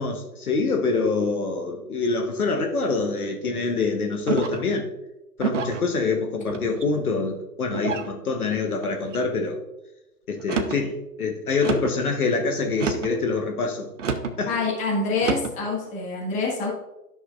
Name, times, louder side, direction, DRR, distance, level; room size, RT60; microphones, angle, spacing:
voice 1, 0.0-4.9 5.4-9.6 10.3-13.9 14.4-14.5, left 4 dB, 60° left, 3 dB, 1.3 m, -25 dB
sound 1, 4.3-4.7 5.4-5.9 6.5-7.0 7.7-8.1 8.8-9.2 10.4-10.8 11.6-12.0 12.7-13.2 14.0-14.4 15.2-15.6, right 5 dB, 50° right, 0.9 m, -28 dB
voice 2, 14.5-16.7, left 3 dB, 15° left, -3 dB, 1.6 m, -26 dB
12.0 x 6.2 x 2.5 m, 0.96 s
figure-of-eight pair, 135°, 49 cm